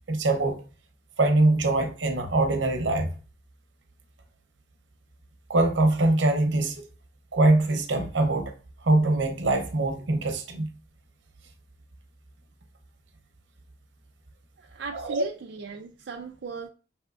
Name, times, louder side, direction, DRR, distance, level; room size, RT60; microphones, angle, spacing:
voice 1, 0.1-0.6 1.2-3.1 5.5-6.8 7.3-8.5 8.8-10.7 14.9-15.2, right 2 dB, 85° right, 0.8 m, -23 dB
voice 2, 14.6-16.7, right 5 dB, 70° right, 0.4 m, -38 dB
5.5 x 3.5 x 2.5 m
head